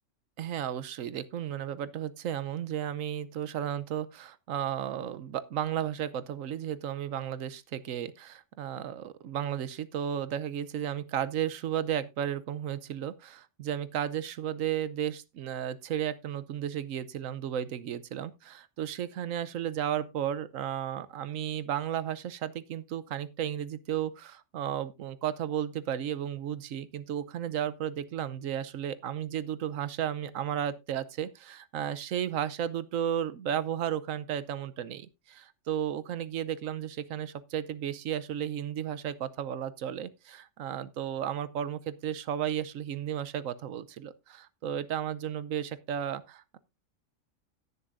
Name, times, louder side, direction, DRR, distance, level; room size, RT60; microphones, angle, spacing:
voice 1, 0.4-46.6, right 10 dB, 80° right, 1.1 m, -34 dB
17.5 x 6.9 x 2.5 m
omnidirectional pair, 1.4 m